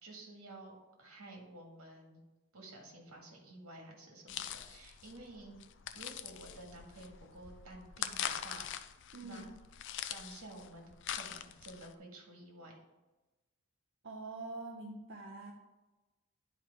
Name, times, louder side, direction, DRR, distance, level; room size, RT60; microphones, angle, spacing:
voice 1, 0.0-2.2 2.5-5.5 5.9-8.7 9.2-9.5 10.1-12.8, right 2 dB, 75° right, 1 dB, 1.8 m, -52 dB
sound 1, 4.3-11.9, left 10 dB, 55° left, 0.4 m, -43 dB
voice 2, 9.1-9.5 14.0-15.5, right 3 dB, 55° right, -1 dB, 0.7 m, -45 dB
10.5 x 4.6 x 3.6 m, 1.1 s
head